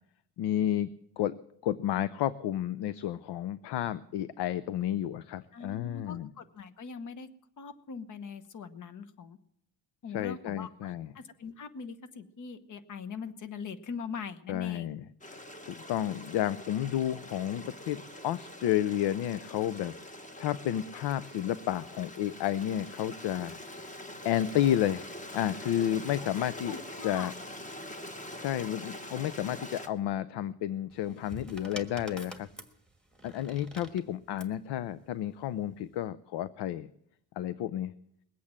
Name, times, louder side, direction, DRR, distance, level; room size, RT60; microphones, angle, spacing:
voice 1, 0.4-0.9 1.2-1.3 1.6-6.3 10.1-11.1 14.5-23.6 24.2-26.7 27.0-27.3 28.4-32.5 33.2-36.9 37.4-37.9, left 11 dB, 75° left, 16 dB, 0.6 m, -31 dB
voice 2, 5.5-7.3 7.6-9.4 10.0-14.9 26.5-27.3, left 5 dB, 45° left, 10 dB, 1.1 m, -42 dB
Stream, 15.2-29.9, left 1 dB, 20° left, 1.1 m, -44 dB
sound 1, 30.9-34.6 35.6-36.0, right 1 dB, ahead, 1.4 m, -47 dB
21.0 x 8.5 x 7.3 m, 0.74 s
cardioid pair, 135°, 41 cm